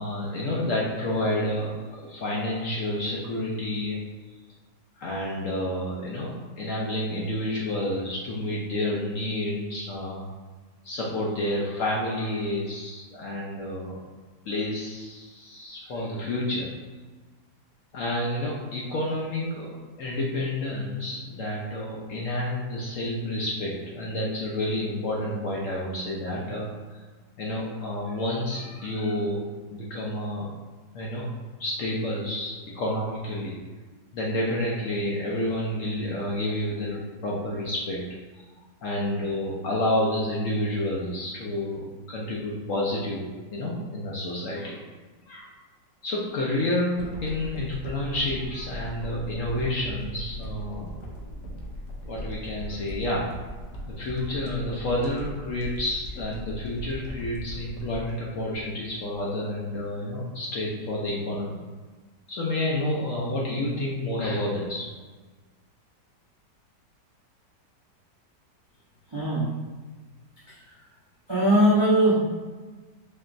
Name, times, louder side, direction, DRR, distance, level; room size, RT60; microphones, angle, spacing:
voice 1, 0.0-1.7 2.0-4.0 5.0-10.3 10.8-14.0 14.5-16.7 17.9-19.7 20.0-26.7 27.4-30.5 30.9-31.3 31.6-33.6 34.1-38.0 38.8-44.8 45.3-45.5 46.0-50.9 52.1-53.3 53.9-61.6 62.3-64.9, left 1 dB, 65° left, -4 dB, 0.8 m, -29 dB
sound 1, 47.0-59.3 59.8-59.9, right 1 dB, 85° left, 1.3 m, -39 dB
voice 2, 69.1-69.5 70.5-70.8 71.3-72.1, right 1 dB, 45° right, -9 dB, 0.3 m, -21 dB
4.3 x 2.9 x 2.5 m, 1.3 s
omnidirectional pair, 1.8 m